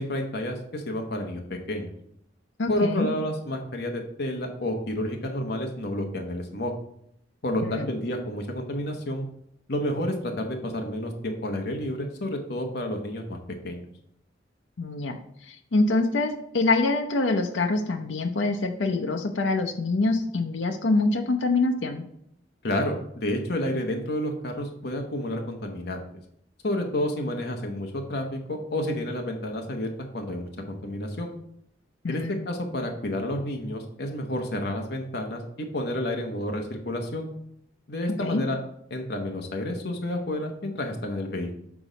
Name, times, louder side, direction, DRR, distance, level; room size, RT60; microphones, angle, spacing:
voice 1, 0.0-1.9 2.7-6.7 7.4-9.3 9.7-13.4 13.6-13.8 22.6-26.0 26.6-29.9 30.1-31.3 32.1-37.3 37.9-38.6 38.9-41.5, left 1 dB, 60° left, 3 dB, 0.9 m, -30 dB
voice 2, 2.6-3.1 7.6-7.9 14.8-22.0 32.0-32.4 38.2-38.4, left 3 dB, 85° left, 5 dB, 0.7 m, -25 dB
6.1 x 3.9 x 6.1 m, 0.73 s
head